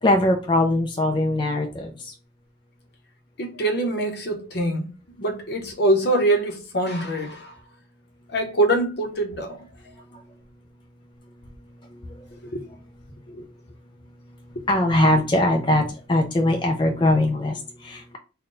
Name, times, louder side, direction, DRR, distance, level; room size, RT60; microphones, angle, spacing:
voice 1, 0.0-2.1 10.1-10.2 11.9-12.3 12.7-12.8 14.7-18.2, left 1 dB, 25° left, 0.4 m, -21 dB
voice 2, 3.4-4.9 5.2-7.5 8.3-9.6 12.5-12.7 13.3-13.4 14.6-14.7, right 1 dB, 60° left, 0.8 m, -24 dB
3.8 x 2.2 x 3.7 m
head